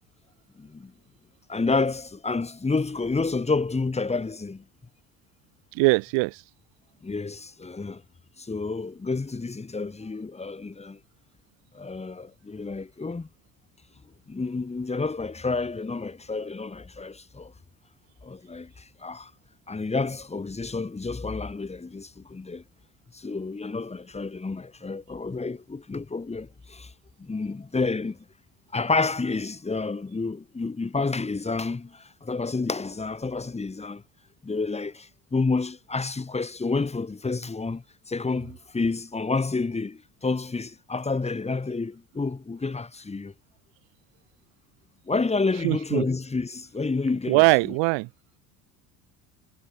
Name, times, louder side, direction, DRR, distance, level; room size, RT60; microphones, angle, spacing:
voice 1, 0.6-0.9 1.5-4.6 7.0-8.0 8.4-11.0 11.7-13.3 14.3-17.5 18.2-19.3 19.7-22.6 23.1-26.9 27.2-28.2 28.7-34.0 34.4-43.3 45.1-47.7, left 3 dB, 15° left, 2.5 m, -29 dB
voice 2, 5.7-6.4 45.6-46.0 47.3-48.1, right 28 dB, 75° right, 0.7 m, -21 dB
cardioid pair, 125°, 44 cm